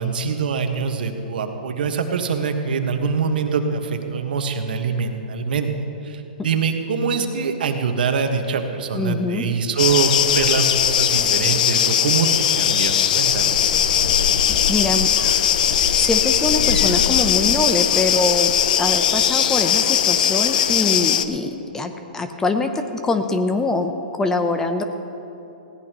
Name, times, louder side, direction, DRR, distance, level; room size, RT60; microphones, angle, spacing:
voice 1, 0.0-5.7 6.0-12.3 12.6-13.6, right 5 dB, 70° right, 5 dB, 1.5 m, -24 dB
voice 2, 8.9-9.5 14.5-15.1 16.0-24.8, left 3 dB, 10° left, 7 dB, 0.7 m, -24 dB
sound 1, 9.8-21.2, left 9 dB, 55° left, 0.7 m, -19 dB
20.0 x 16.5 x 3.1 m, 3.0 s
hypercardioid pair, 145°, 5 cm